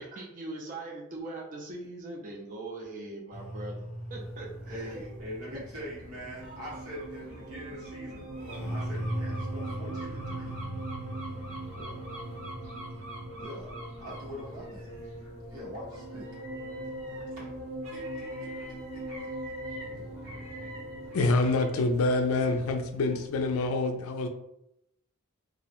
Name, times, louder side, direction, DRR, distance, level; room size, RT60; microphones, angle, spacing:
voice 1, 0.0-3.8 4.1-5.0, right 2 dB, 35° right, -1 dB, 0.4 m, -41 dB
sound 1, 3.3-22.1, right 1 dB, 35° left, 0.7 m, -39 dB
sound 2, 4.1-23.7, right 1 dB, 60° right, 0.9 m, -48 dB
voice 2, 4.7-8.3 8.7-10.5 11.7-12.0 13.3-14.9 15.5-16.3 17.1-17.6 17.9-19.5, equal, 85° right, -5 dB, 1.1 m, -44 dB
voice 3, 21.1-24.3, left 2 dB, 70° left, 6 dB, 0.3 m, -26 dB
2.4 x 2.0 x 2.9 m, 0.81 s
head